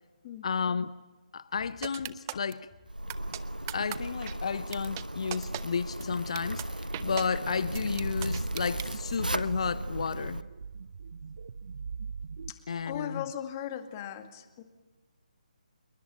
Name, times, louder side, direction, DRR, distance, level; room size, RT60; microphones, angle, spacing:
voice 1, 0.4-0.9 1.3-2.7 3.7-10.4 12.7-13.3, left 5 dB, 45° left, 0.9 m, -32 dB
sound 1, 1.8-2.5 3.1-3.4 3.7-4.0 4.3-4.4 4.7-5.0 5.3-5.6 6.0-6.1 6.4-6.6 6.9-7.2 7.8-8.9, right 15 dB, 25° right, 0.9 m, -37 dB
Zipper (clothing), 2.9-10.4, right 1 dB, 85° right, 1.1 m, -36 dB
sound 2, 7.7-12.5, right 5 dB, 50° right, 1.1 m, -42 dB
voice 2, 12.5-14.6, left 10 dB, 25° left, 2.1 m, -39 dB
27.5 x 22.5 x 8.9 m
figure-of-eight pair, 145°, 4 cm